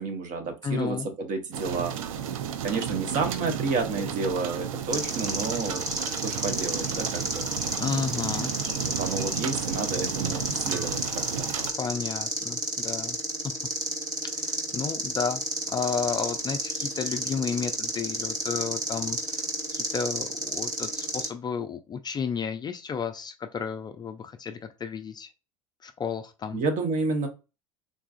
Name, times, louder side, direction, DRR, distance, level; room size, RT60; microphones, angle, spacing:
voice 1, 0.0-1.9 2.6-5.9 6.2-7.5 9.0-11.5 26.5-27.3, right 4 dB, 45° right, 6 dB, 0.9 m, -30 dB
voice 2, 0.6-1.1 7.8-8.5 11.7-13.2 13.4-13.5 14.3-15.4 15.7-19.4 19.7-25.3 25.8-26.6, left 6 dB, 25° left, 8 dB, 0.3 m, -32 dB
sound 1, 1.5-11.7, right 8 dB, 75° right, 0.5 m, -33 dB
sound 2, 4.9-21.3, right 1 dB, 20° right, 1.1 m, -31 dB
3.8 x 2.4 x 2.4 m, 0.29 s
hypercardioid pair, 80°, 18 cm